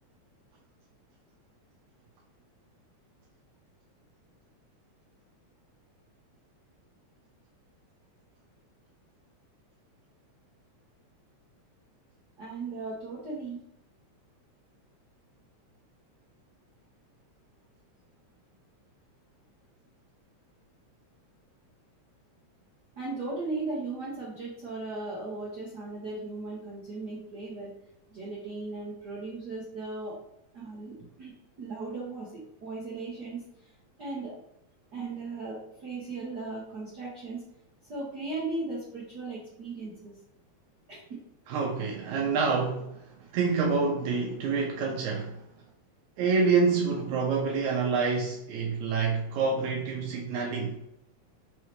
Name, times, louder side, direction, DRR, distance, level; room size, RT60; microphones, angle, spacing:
voice 1, 12.4-13.6 23.0-27.7 28.1-30.1 30.5-31.3 31.6-33.7 34.0-34.3 34.9-37.4 37.9-40.1 40.9-41.0, right 3 dB, 55° right, 1.1 m, -37 dB
voice 2, 41.5-45.4 46.2-50.8, right 4 dB, 80° right, 1.9 m, -27 dB
5.4 x 3.2 x 3.1 m
omnidirectional pair, 3.3 m